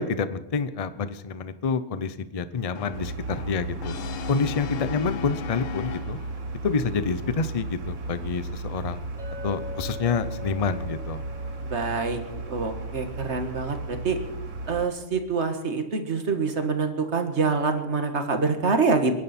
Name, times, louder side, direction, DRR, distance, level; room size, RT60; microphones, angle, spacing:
voice 1, 0.0-4.0 4.3-6.2 6.6-9.0 9.4-11.2, left 5 dB, 35° left, 13 dB, 0.7 m, -28 dB
Brass instrument, 2.8-6.6, left 9 dB, 85° left, 1.1 m, -37 dB
sound 1, 2.9-14.9, right 2 dB, 80° right, 1.6 m, -35 dB
Chink clink, 9.2-13.4, left 5 dB, ahead, 5.6 m, -43 dB
voice 2, 11.6-12.2 12.5-14.2 14.7-19.1, right 4 dB, 65° right, 6 dB, 1.8 m, -26 dB
28.5 x 11.0 x 4.3 m, 1.0 s
omnidirectional pair, 1.3 m